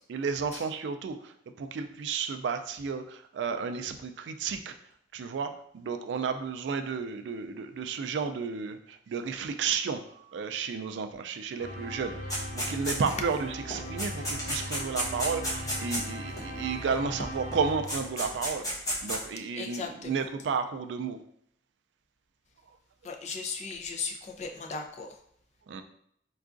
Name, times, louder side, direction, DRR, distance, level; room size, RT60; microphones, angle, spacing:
voice 1, 0.1-4.7 5.1-18.7 19.0-21.2 25.7-25.8, right 5 dB, 75° right, 8 dB, 0.3 m, -32 dB
sound 1, 11.6-18.6, equal, 65° left, 0.8 m, -39 dB
sound 2, 12.3-13.3 13.7-16.4 17.5-17.6 17.9-19.2, equal, 20° left, 1.1 m, -32 dB
voice 2, 19.6-20.1 23.0-25.1, left 5 dB, 40° left, 3 dB, 0.4 m, -37 dB
4.5 x 2.4 x 2.5 m, 0.70 s
head